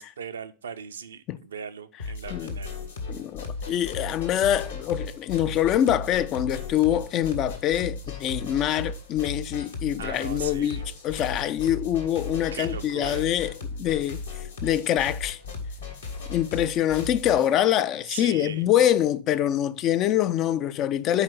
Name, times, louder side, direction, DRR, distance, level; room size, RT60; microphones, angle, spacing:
voice 1, 0.0-2.7 10.0-10.8 12.5-13.3 18.1-18.6, right 7 dB, 65° right, 0.5 m, -38 dB
sound 1, 2.0-17.5, left 4 dB, 70° left, 1.6 m, -36 dB
voice 2, 3.1-13.5 13.8-14.2 14.6-15.4 16.3-21.2, left 11 dB, 35° left, 0.4 m, -25 dB
5.6 x 4.5 x 6.0 m
figure-of-eight pair, 90°, 0 cm